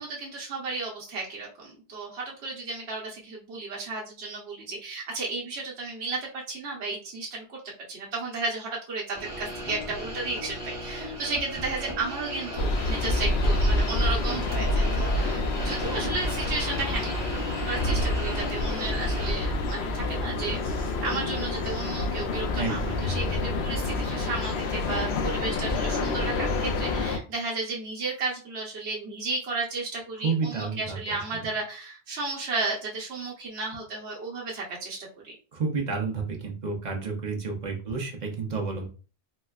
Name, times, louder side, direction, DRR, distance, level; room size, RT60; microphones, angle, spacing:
voice 1, 0.0-7.6 7.9-17.2 17.7-35.0 35.2-35.3, right 3 dB, 70° right, -4 dB, 1.1 m, -33 dB
sound 1, 9.1-19.3, equal, 25° right, 1.1 m, -36 dB
sound 2, 12.6-27.2, left 2 dB, 70° left, 0.8 m, -27 dB
voice 2, 22.6-23.3 30.2-31.2 35.5-38.9, right 4 dB, 45° right, 1 dB, 0.7 m, -31 dB
4.1 x 2.1 x 2.3 m, 0.36 s
omnidirectional pair, 1.2 m